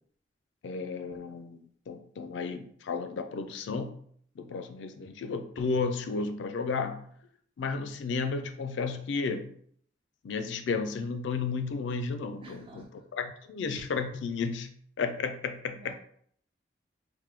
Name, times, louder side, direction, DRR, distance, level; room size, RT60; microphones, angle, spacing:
voice 1, 0.6-4.0 4.4-7.0 7.6-9.5 10.2-12.8 13.2-14.7 15.0-15.9, left 4 dB, 75° left, 8 dB, 0.4 m, -33 dB
voice 2, 12.4-12.9 15.7-15.9, right 3 dB, 30° right, 0 dB, 0.4 m, -49 dB
3.0 x 2.2 x 3.2 m, 0.62 s
head